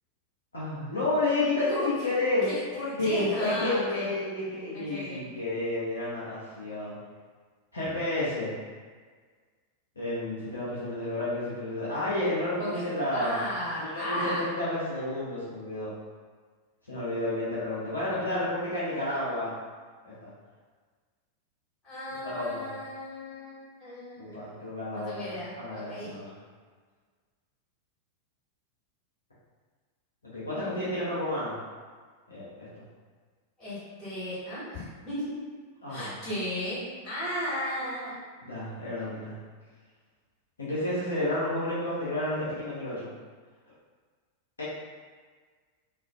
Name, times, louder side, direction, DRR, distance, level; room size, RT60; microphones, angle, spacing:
voice 1, 0.5-2.5 3.0-7.0 7.7-8.6 10.0-13.4 13.8-15.9 16.9-19.6 20.0-20.3 22.2-22.7 24.2-26.3 30.2-31.6 32.3-32.8 35.8-36.2 38.4-39.4 40.6-43.1 44.6-44.7, left 1 dB, 75° left, -10 dB, 0.6 m, -31 dB
voice 2, 1.7-2.1 2.4-4.1 4.7-5.2 12.6-12.8 13.1-14.4 21.8-24.5 24.9-26.1 33.6-35.4 35.9-38.1, left 1 dB, 25° left, -11 dB, 1.4 m, -35 dB
2.3 x 2.3 x 2.4 m, 1.5 s
figure-of-eight pair, 90°, 0 cm